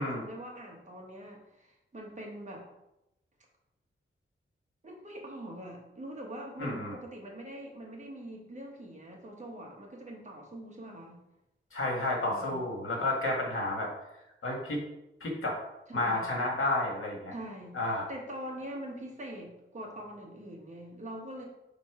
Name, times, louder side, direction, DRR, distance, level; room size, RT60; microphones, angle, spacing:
voice 1, 0.0-2.7 4.8-11.2 12.3-12.6 15.9-16.3 17.3-17.8 18.1-21.5, right 1 dB, 35° right, 0 dB, 1.2 m, -43 dB
voice 2, 6.6-6.9 11.7-13.9 14.4-14.8 15.2-15.6 15.9-17.3 17.7-18.0, left 2 dB, 85° left, -1 dB, 1.7 m, -31 dB
5.5 x 3.7 x 4.8 m, 0.88 s
wide cardioid pair, 160°, 21 cm